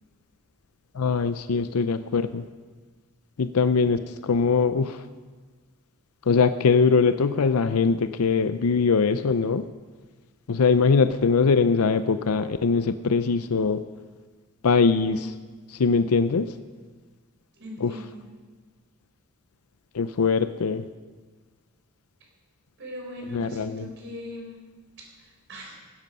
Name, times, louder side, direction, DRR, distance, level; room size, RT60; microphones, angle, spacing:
voice 1, 0.9-2.5 3.4-5.0 6.3-9.6 10.5-13.8 14.6-15.3 15.7-16.5 17.8-17.9 19.9-20.8 23.3-23.9, left 5 dB, 80° left, 11 dB, 0.5 m, -22 dB
voice 2, 17.5-18.3 22.8-24.6 25.2-25.8, equal, 55° right, -1 dB, 4.5 m, -40 dB
16.0 x 13.0 x 5.5 m, 1.4 s
head